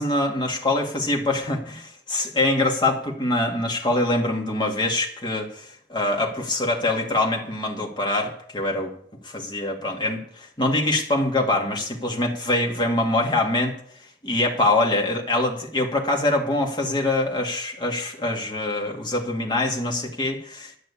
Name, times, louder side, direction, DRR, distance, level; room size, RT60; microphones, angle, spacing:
voice 1, 0.0-8.9 9.2-13.7 14.2-20.7, left 2 dB, 25° left, 0 dB, 2.2 m, -24 dB
12.0 x 6.5 x 8.5 m, 0.62 s
head